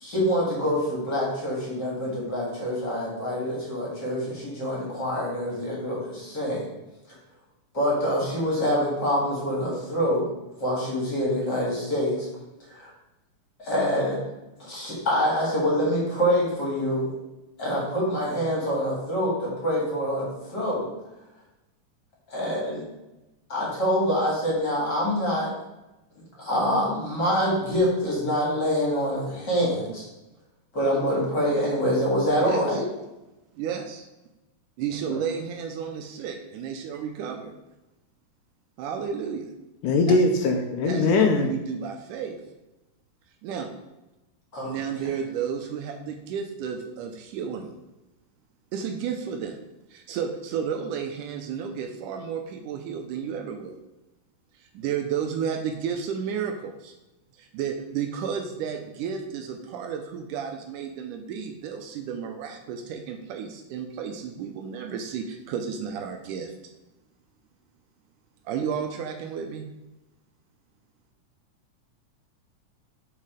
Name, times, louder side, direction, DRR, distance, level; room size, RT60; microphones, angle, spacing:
voice 1, 0.0-6.7 7.7-10.3 10.6-12.3 12.7-12.9 13.6-14.2 14.6-17.1 17.6-20.9 22.3-22.8 23.5-25.5 26.4-30.1 30.7-32.8 35.1-35.2 44.5-44.7, equal, 35° left, -4 dB, 2.1 m, -25 dB
voice 2, 32.4-32.8 33.6-34.0 34.8-37.5 38.8-39.5 40.1-40.2 40.8-42.4 43.4-43.7 44.6-47.7 48.7-49.6 49.9-53.7 54.6-56.9 57.4-66.5 68.5-69.7, right 7 dB, 80° right, 5 dB, 2.0 m, -32 dB
voice 3, 39.8-41.5, left 3 dB, 75° left, 3 dB, 2.1 m, -21 dB
7.3 x 4.3 x 5.0 m, 1.0 s
omnidirectional pair, 3.9 m